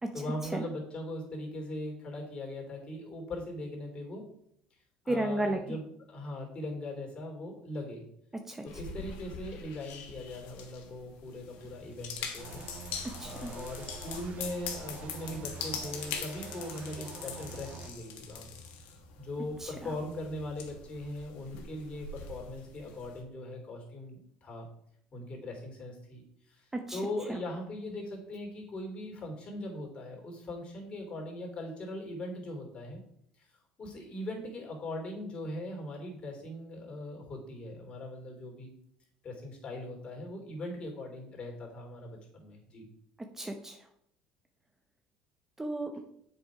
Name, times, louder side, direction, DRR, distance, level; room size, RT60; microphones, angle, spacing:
voice 1, 0.1-4.2 5.0-5.8 6.1-8.1 8.6-12.6 13.2-18.5 19.2-24.6 25.1-26.2 26.5-33.0 33.4-33.5 33.8-38.7 39.2-42.8, left 1 dB, 35° left, 0 dB, 3.2 m, -40 dB
voice 2, 5.1-5.8 8.3-8.6 13.2-13.5 19.6-19.7 26.7-27.0 43.4-43.8 45.6-46.0, right 1 dB, 15° right, 5 dB, 0.8 m, -33 dB
sound 1, 8.7-23.2, left 6 dB, 70° left, 1.5 m, -43 dB
sound 2, 12.4-17.9, right 5 dB, 45° right, 1.3 m, -46 dB
7.2 x 5.7 x 4.7 m, 0.71 s
supercardioid pair, 90°, 3 cm